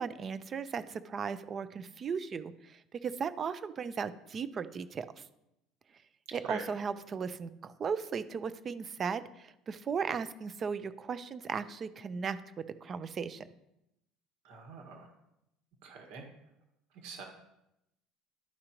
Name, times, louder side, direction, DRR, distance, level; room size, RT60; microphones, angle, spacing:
voice 1, 0.0-5.1 6.3-13.4, right 6 dB, 25° right, 14 dB, 0.4 m, -36 dB
voice 2, 14.4-15.1 15.8-16.3 16.9-17.2, right 5 dB, 70° right, 2 dB, 1.7 m, -44 dB
12.0 x 5.1 x 2.9 m, 0.85 s
cardioid pair, 170°, 0 cm